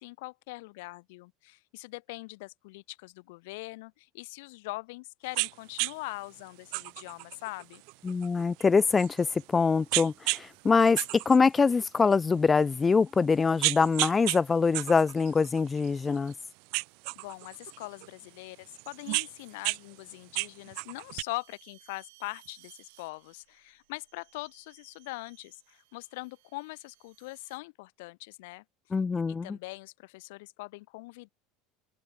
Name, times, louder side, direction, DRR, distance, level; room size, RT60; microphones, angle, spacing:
voice 1, 0.0-7.8 17.1-28.6 29.4-31.3, left 24 dB, 75° left, 1.0 m, -42 dB
sound 1, 5.3-5.5 5.8-5.9 6.7-9.4 9.9-10.5 10.8-12.2 12.7-12.8 13.3-14.4 14.7-16.3 16.7-18.1 18.7-19.8 20.1-21.2, right 34 dB, 60° right, 1.0 m, -32 dB
voice 2, 8.0-16.3 28.9-29.6, left 5 dB, 15° left, 0.5 m, -24 dB
sound 2, 9.1-11.5 12.8-13.2 14.0-27.6, right 23 dB, 75° right, 7.0 m, -64 dB
cardioid pair, 165°, 0 cm